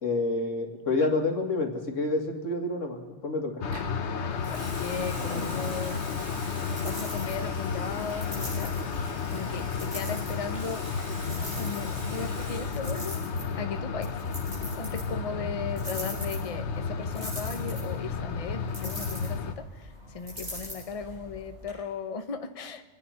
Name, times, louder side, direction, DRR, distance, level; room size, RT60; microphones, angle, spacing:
voice 1, 0.0-3.6, left 2 dB, 90° left, 3 dB, 2.4 m, -28 dB
sound 1, 3.6-19.5, left 5 dB, 70° left, 1.2 m, -32 dB
Water tap faucet / Sink (filling or washing) / Liquid, 3.7-3.9 4.4-13.2 13.4-13.8, right 1 dB, 90° right, 4.0 m, -45 dB
voice 2, 4.1-6.4 6.8-10.8 11.5-13.2 13.6-14.2 14.8-22.8, left 5 dB, 30° left, 7 dB, 1.0 m, -37 dB
sound 2, 4.2-21.7, equal, 70° right, 8.2 m, -43 dB
25.5 x 9.9 x 5.7 m, 1.3 s
omnidirectional pair, 1.2 m